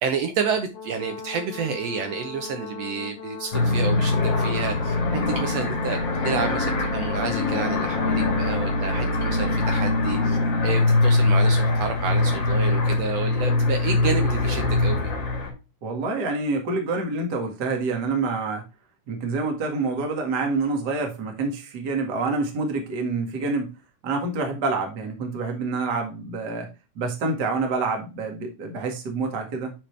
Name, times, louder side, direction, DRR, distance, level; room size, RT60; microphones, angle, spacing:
voice 1, 0.0-4.9 5.3-6.0 6.2-10.4 10.6-15.0, right 6 dB, 90° right, 6 dB, 1.4 m, -29 dB
Brass instrument, 0.7-9.7, left 4 dB, 80° left, 3.2 m, -38 dB
sound 1, 3.5-15.5, left 2 dB, 40° left, 2.0 m, -22 dB
voice 2, 15.8-18.6 19.1-23.7 24.0-26.7 27.0-29.7, right 3 dB, 35° right, 3 dB, 1.9 m, -27 dB
10.5 x 4.4 x 3.3 m, 0.28 s
omnidirectional pair, 4.1 m